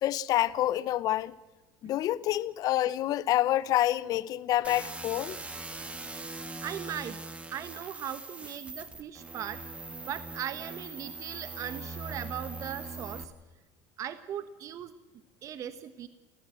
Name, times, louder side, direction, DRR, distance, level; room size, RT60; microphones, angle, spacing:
voice 1, 0.0-1.4 1.8-5.4, left 13 dB, 55° left, 0.9 m, -27 dB
sound 1, 4.6-13.2, right 3 dB, 15° right, 2.6 m, -41 dB
voice 2, 6.6-7.2 7.5-9.6 10.1-13.3 14.0-14.9 15.4-16.1, right 10 dB, 45° right, 1.2 m, -38 dB
29.0 x 14.5 x 7.8 m
supercardioid pair, 115°, 8 cm